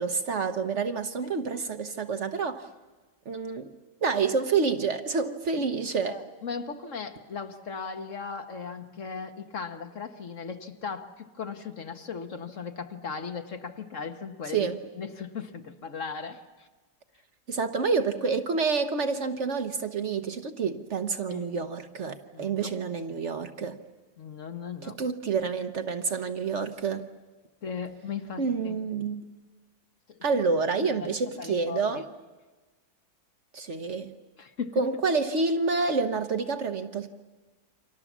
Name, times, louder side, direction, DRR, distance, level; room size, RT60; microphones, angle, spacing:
voice 1, 0.0-2.7 3.3-3.7 4.0-6.2 14.5-14.8 17.5-23.8 24.8-27.1 28.4-29.2 30.2-32.1 33.5-34.1 34.8-37.1, right 4 dB, 50° right, 8 dB, 1.2 m, -28 dB
voice 2, 6.0-14.7 15.0-16.7 21.3-21.4 22.3-22.7 24.2-25.0 27.6-28.8 30.1-30.2 30.8-32.0 34.4-34.8, left 5 dB, 55° left, 7 dB, 1.5 m, -37 dB
29.0 x 24.5 x 7.3 m, 1.3 s
omnidirectional pair, 1.7 m